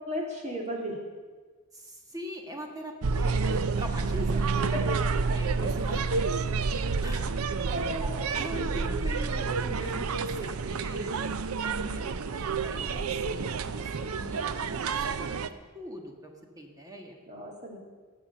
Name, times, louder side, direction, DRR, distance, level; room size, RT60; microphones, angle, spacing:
voice 1, 0.1-1.0 4.6-5.3 7.7-8.2 17.3-17.8, equal, 35° right, -1 dB, 2.7 m, -35 dB
voice 2, 1.7-4.9 5.1-6.1 7.0-7.3 7.6-17.2, equal, 15° right, 2 dB, 1.4 m, -42 dB
sound 1, 3.0-15.5, right 4 dB, 80° right, 0.6 m, -29 dB
18.5 x 7.2 x 6.9 m, 1.4 s
head